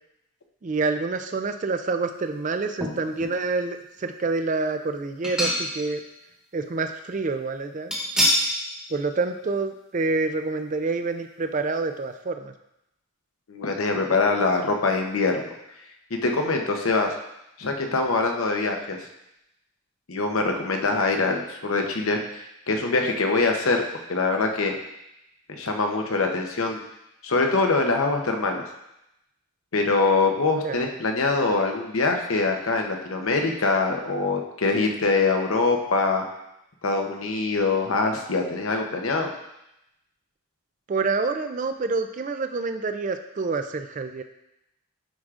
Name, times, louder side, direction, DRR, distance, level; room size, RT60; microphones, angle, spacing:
voice 1, 0.6-6.0 6.5-7.9 8.9-12.5 30.6-30.8 40.9-44.2, right 3 dB, 35° right, 8 dB, 0.4 m, -27 dB
sound 1, 2.8-3.4 3.9-4.0 5.2-6.0 6.3-6.4 7.9-8.5 8.9-9.1 9.4-9.5, equal, 5° right, 1.1 m, -25 dB
voice 2, 13.5-15.5 16.1-17.1 17.6-19.1 20.1-22.2 22.7-23.8 24.1-24.7 25.5-26.8 27.2-28.6 29.7-36.2 36.8-39.3, left 3 dB, 85° left, 3 dB, 0.8 m, -23 dB
10.0 x 4.9 x 2.5 m, 0.86 s
head